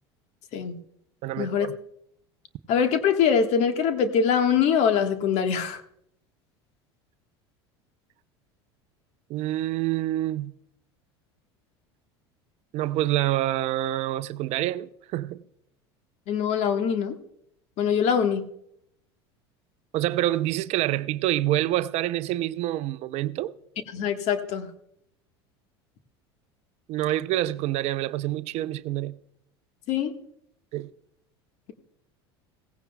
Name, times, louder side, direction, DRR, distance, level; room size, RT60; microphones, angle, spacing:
voice 1, 1.2-1.8 9.3-10.5 12.7-15.4 19.9-23.5 26.9-29.2 30.7-30.9, right 14 dB, 55° right, 0.6 m, -27 dB
voice 2, 2.7-5.8 16.3-17.2 17.8-18.4 23.9-24.7 29.9-30.1, left 7 dB, 55° left, 1.5 m, -23 dB
17.0 x 15.5 x 2.3 m
hypercardioid pair, 85°, 14 cm